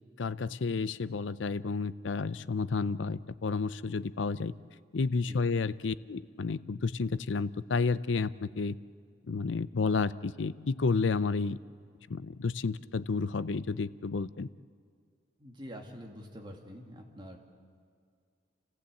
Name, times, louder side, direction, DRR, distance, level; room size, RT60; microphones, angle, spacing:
voice 1, 0.2-4.5 4.9-8.8 9.3-11.6 12.1-14.5, left 4 dB, 80° left, 16 dB, 0.6 m, -31 dB
voice 2, 15.4-17.4, equal, 25° right, 1 dB, 2.4 m, -46 dB
29.0 x 15.0 x 8.4 m, 2.1 s
head